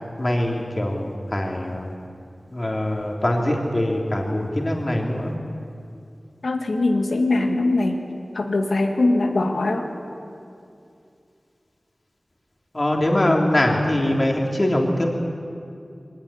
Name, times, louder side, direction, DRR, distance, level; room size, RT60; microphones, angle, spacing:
voice 1, 0.2-1.9 2.5-5.3 12.7-15.1, left 1 dB, 35° left, 0 dB, 3.3 m, -22 dB
voice 2, 6.4-8.0 8.3-9.9, left 2 dB, 90° left, 3 dB, 2.3 m, -21 dB
22.5 x 19.0 x 10.0 m, 2.5 s
wide cardioid pair, 75°, 0 cm